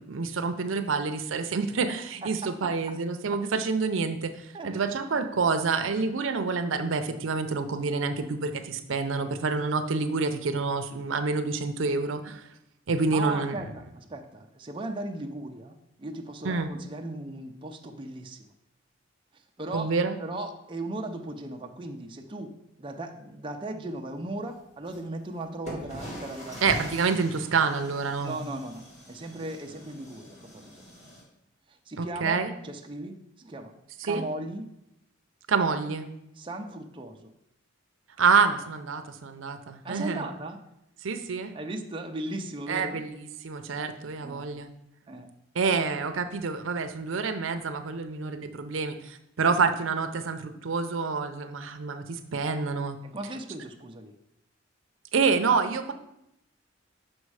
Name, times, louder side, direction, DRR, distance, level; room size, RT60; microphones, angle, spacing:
voice 1, 0.1-12.4 12.9-13.5 16.4-16.7 19.7-20.2 26.6-28.4 32.0-32.5 34.1-34.2 35.5-36.1 38.2-40.2 41.0-41.5 42.7-44.7 45.6-53.0 55.1-55.9, right 4 dB, 80° right, 8 dB, 0.6 m, -27 dB
voice 2, 2.2-2.7 4.5-5.2 13.1-18.5 19.3-26.6 28.2-28.8 29.1-30.8 31.7-33.7 34.0-34.7 36.3-37.3 39.8-40.6 41.5-43.0 44.2-44.5 45.1-45.3 53.0-54.1, right 2 dB, 25° right, 3 dB, 0.5 m, -37 dB
sound 1, 24.9-25.0 25.6-31.2, equal, 35° left, 1.8 m, -42 dB
6.2 x 5.3 x 4.8 m, 0.83 s
head